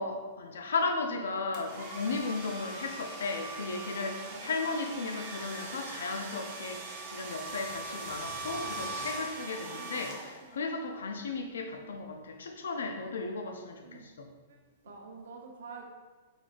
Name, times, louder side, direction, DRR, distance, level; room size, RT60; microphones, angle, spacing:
voice 1, 0.0-14.3, left 3 dB, 90° left, 4 dB, 0.6 m, -35 dB
sound 1, 1.5-10.7, right 2 dB, 40° right, 0.8 m, -41 dB
voice 2, 4.2-5.1 9.7-10.6 13.8-14.1 14.5-15.8, right 5 dB, 80° right, 1 dB, 0.9 m, -49 dB
4.9 x 3.9 x 2.5 m, 1.3 s
hypercardioid pair, 140°, 0 cm